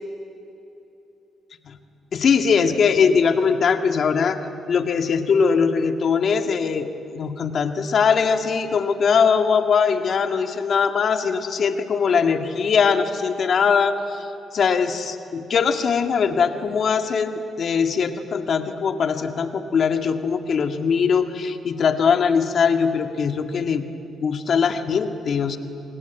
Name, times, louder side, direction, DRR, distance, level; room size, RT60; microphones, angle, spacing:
voice 1, 2.1-4.4 4.7-6.9 7.1-14.3 14.5-23.8 24.2-25.6, left 6 dB, 60° left, 6 dB, 2.0 m, -21 dB
28.5 x 19.5 x 9.3 m, 2.9 s
supercardioid pair, 60°, 0 cm